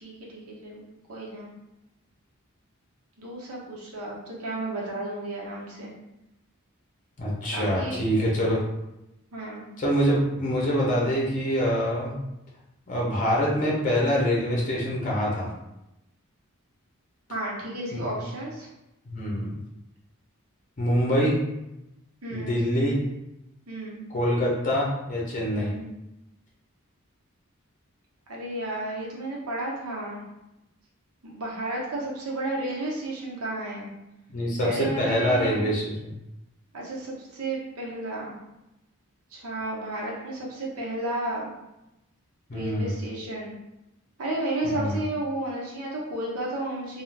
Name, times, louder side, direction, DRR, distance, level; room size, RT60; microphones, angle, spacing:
voice 1, 0.0-0.8 1.1-1.5 3.2-5.9 7.5-8.0 9.3-9.7 17.3-18.7 22.2-22.6 23.7-24.1 25.5-25.9 28.3-30.2 31.2-33.9 34.6-35.8 36.7-38.3 39.3-41.5 42.5-43.5 44.2-47.0, right 1 dB, 85° right, -4 dB, 0.8 m, -32 dB
voice 2, 7.2-8.6 9.8-12.1 12.9-15.5 17.9-18.1 19.1-19.6 20.8-21.4 22.3-23.0 24.1-25.8 34.3-36.2 42.5-43.0 44.6-45.0, equal, 35° left, -4 dB, 0.6 m, -25 dB
2.4 x 2.2 x 3.2 m, 0.91 s
head